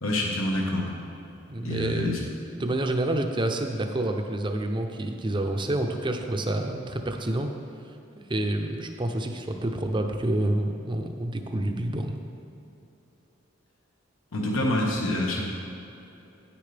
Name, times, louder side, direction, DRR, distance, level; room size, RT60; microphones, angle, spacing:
voice 1, 0.0-0.9 1.6-2.2 14.3-15.4, left 1 dB, 85° left, -1 dB, 1.4 m, -26 dB
voice 2, 1.5-7.5 8.3-12.2, right 1 dB, 25° right, 4 dB, 0.6 m, -28 dB
10.0 x 9.4 x 3.4 m, 2.9 s
head